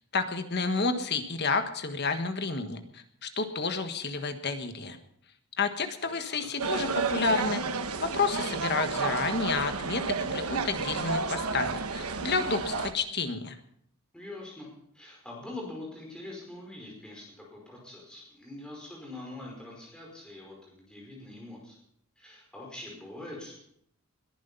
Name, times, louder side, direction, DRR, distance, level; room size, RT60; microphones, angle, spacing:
voice 1, 0.1-5.0 5.6-7.6 8.0-13.6, left 4 dB, 50° left, 8 dB, 1.4 m, -30 dB
voice 2, 6.0-6.5 14.1-14.7 14.9-17.3 17.5-21.8 22.2-23.6, left 2 dB, 5° left, -2 dB, 5.0 m, -44 dB
sound 1, 6.6-12.9, right 4 dB, 80° right, 1.1 m, -31 dB
21.0 x 11.0 x 5.6 m, 0.70 s
head